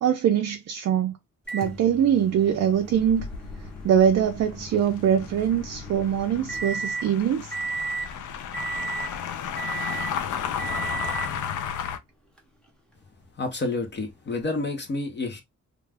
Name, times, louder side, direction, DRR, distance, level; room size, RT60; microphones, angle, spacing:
voice 1, 0.0-1.1 1.5-3.3 3.8-7.5, right 9 dB, 60° right, 0.5 m, -23 dB
Microwave oven, 1.5-7.1 7.5-8.1 8.5-9.2 9.6-10.2 10.6-11.4 12.4-12.5 14.5-14.6, right 4 dB, 5° left, 0.7 m, -35 dB
sound 1, 2.9-12.0, left 8 dB, 80° left, 0.5 m, -34 dB
voice 2, 13.4-15.4, left 3 dB, 35° left, 0.7 m, -29 dB
2.4 x 2.3 x 3.3 m
wide cardioid pair, 145°, 30 cm